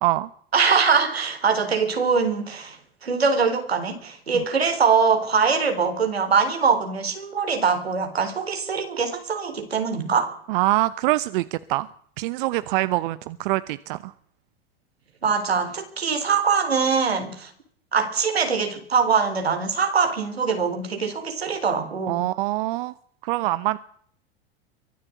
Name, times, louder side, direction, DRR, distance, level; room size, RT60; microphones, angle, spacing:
voice 1, 0.5-2.8 3.0-10.4 15.2-17.5 17.9-22.3, right 5 dB, 90° right, 6 dB, 4.1 m, -22 dB
voice 2, 10.5-11.9 12.2-14.1 22.1-22.9 23.2-23.8, right 17 dB, 60° right, 16 dB, 0.9 m, -24 dB
23.5 x 13.5 x 8.5 m, 0.62 s
hypercardioid pair, 90°, 30 cm